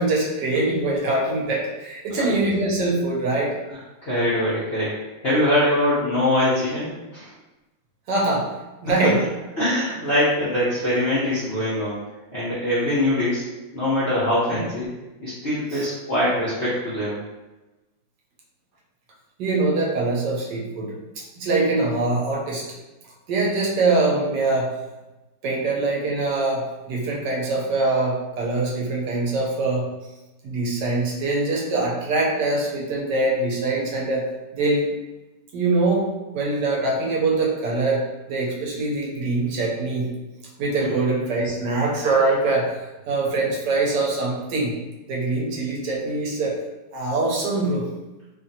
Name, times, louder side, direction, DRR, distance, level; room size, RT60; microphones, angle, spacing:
voice 1, 0.0-3.5 8.1-8.5 8.8-9.2 14.5-14.6 15.7-15.9 19.4-22.7 23.3-24.7 25.4-29.9 30.4-34.3 34.5-34.9 35.5-36.1 36.3-40.1 40.6-42.8 43.1-44.8 45.1-46.6 46.9-47.9, right 2 dB, 70° right, -3 dB, 1.2 m, -23 dB
voice 2, 3.4-4.9 5.2-7.3 8.9-9.1 9.6-12.0 12.3-13.4 13.7-14.9 15.2-17.2 40.8-40.9, left 1 dB, 55° left, -10 dB, 0.7 m, -23 dB
3.1 x 2.5 x 2.6 m, 1.1 s
omnidirectional pair, 2.0 m